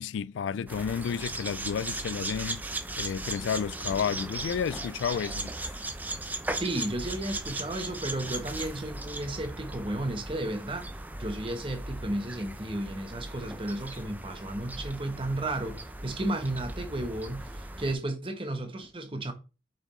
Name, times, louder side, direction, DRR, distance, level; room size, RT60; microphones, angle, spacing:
voice 1, 0.0-2.7 3.0-5.5, left 7 dB, 80° left, 0.3 m, -31 dB
sound 1, 0.7-17.9, right 2 dB, 10° right, 0.5 m, -38 dB
voice 2, 6.5-10.9 11.2-19.3, right 1 dB, 25° right, 1.1 m, -33 dB
7.4 x 5.5 x 3.1 m
head